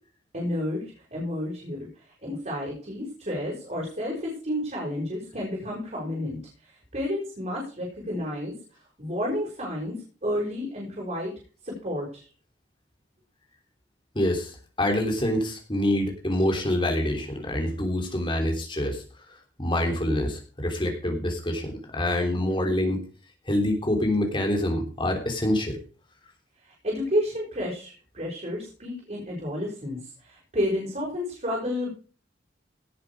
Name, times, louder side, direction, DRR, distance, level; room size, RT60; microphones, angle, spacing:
voice 1, 0.3-0.8 1.1-1.9 2.2-6.4 6.9-8.6 9.0-11.3 11.6-12.2 26.8-31.9, left 1 dB, 40° right, -2 dB, 5.7 m, -31 dB
voice 2, 14.1-23.0 23.5-25.8, left 1 dB, 25° left, 3 dB, 3.3 m, -26 dB
17.5 x 8.0 x 4.9 m, 0.38 s
head